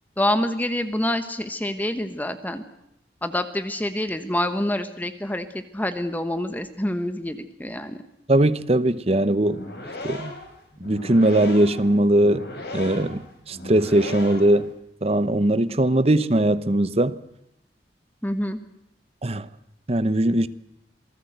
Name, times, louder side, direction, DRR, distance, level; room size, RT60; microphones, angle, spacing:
voice 1, 0.2-2.6 3.2-8.0 18.2-18.6, left 1 dB, 10° left, 1.1 m, -27 dB
voice 2, 8.3-9.7 10.0-10.3 10.8-12.5 12.7-14.7 15.0-17.2 19.2-19.5 19.9-20.5, right 1 dB, 35° right, 0.9 m, -20 dB
sound 1, 9.4-14.7, left 1 dB, 60° left, 5.9 m, -37 dB
27.5 x 19.0 x 8.0 m
head